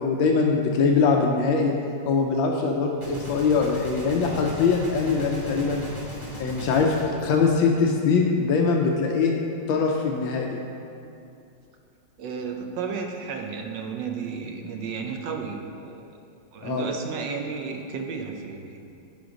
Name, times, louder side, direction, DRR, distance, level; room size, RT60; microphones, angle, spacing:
voice 1, 0.0-1.7 2.1-5.8 6.4-9.3 9.7-10.6 16.6-16.9, left 4 dB, 80° left, 1 dB, 1.4 m, -22 dB
Gunshot gunfire, 3.0-8.2, left 1 dB, 15° right, 1.7 m, -38 dB
voice 2, 12.2-16.0 16.5-18.8, right 5 dB, 70° right, 3 dB, 1.2 m, -33 dB
7.7 x 5.1 x 5.0 m, 2.5 s
omnidirectional pair, 2.1 m